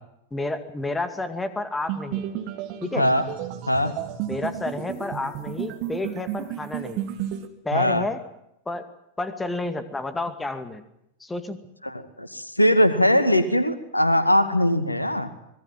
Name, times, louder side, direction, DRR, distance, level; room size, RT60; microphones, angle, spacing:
voice 1, 0.3-2.3 2.8-3.1 4.3-7.1 7.6-8.2 8.7-8.9 9.2-10.8 11.2-11.6, left 2 dB, 10° left, 10 dB, 2.2 m, -30 dB
sound 1, 1.9-7.5, right 11 dB, 45° right, 2.9 m, -32 dB
voice 2, 7.7-8.1 11.8-15.3, equal, 85° left, 11 dB, 2.2 m, -21 dB
25.5 x 22.0 x 7.7 m, 0.80 s
figure-of-eight pair, 90°, 0 cm